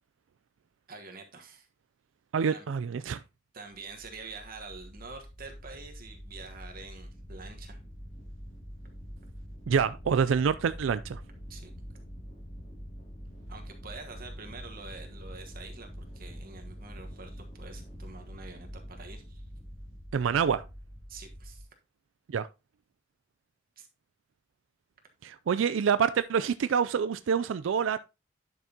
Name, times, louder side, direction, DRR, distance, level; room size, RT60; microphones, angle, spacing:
voice 1, 0.9-1.7 2.5-2.7 3.5-7.8 11.5-11.7 13.5-15.9 16.1-19.4 21.1-21.7 23.8-23.9, right 4 dB, 50° right, 1.3 m, -46 dB
voice 2, 2.3-3.2 9.7-11.2 20.1-20.6 22.3-22.5 25.2-28.0, right 6 dB, 85° right, 0.4 m, -27 dB
sound 1, 3.7-21.6, equal, 40° left, 2.6 m, -45 dB
10.5 x 6.1 x 2.8 m
head